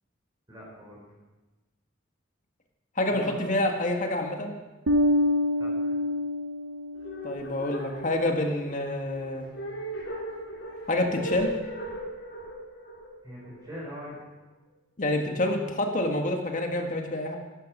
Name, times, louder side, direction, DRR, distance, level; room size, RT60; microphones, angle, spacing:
voice 1, 0.5-1.0 3.1-3.5 5.5-6.0 13.2-14.3, equal, 20° right, -5 dB, 4.8 m, -42 dB
voice 2, 3.0-4.5 7.2-9.4 10.9-11.5 15.0-17.4, left 1 dB, 40° left, 3 dB, 1.7 m, -27 dB
Bass guitar, 4.9-7.3, left 1 dB, 80° right, 0.9 m, -26 dB
sound 1, 6.9-14.1, equal, 65° left, 4.9 m, -39 dB
15.5 x 12.0 x 6.1 m, 1.2 s
head